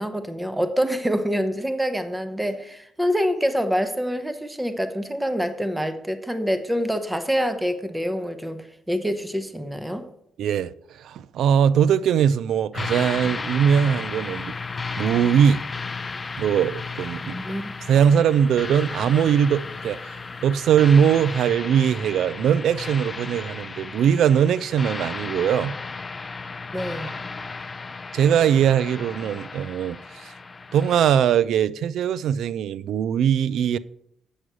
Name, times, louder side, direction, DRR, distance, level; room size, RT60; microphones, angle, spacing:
voice 1, 0.0-10.0 17.3-17.7 26.7-27.2, equal, 5° right, 0.9 m, -26 dB
voice 2, 10.4-14.5 15.0-15.6 16.4-17.4 17.9-20.2 20.4-25.7 28.1-30.3 30.7-33.8, right 8 dB, 75° right, 0.4 m, -21 dB
Suspense metallic sound, 12.7-31.0, left 4 dB, 25° left, 0.4 m, -34 dB
8.1 x 6.1 x 6.1 m
cardioid pair, 90°, 0 cm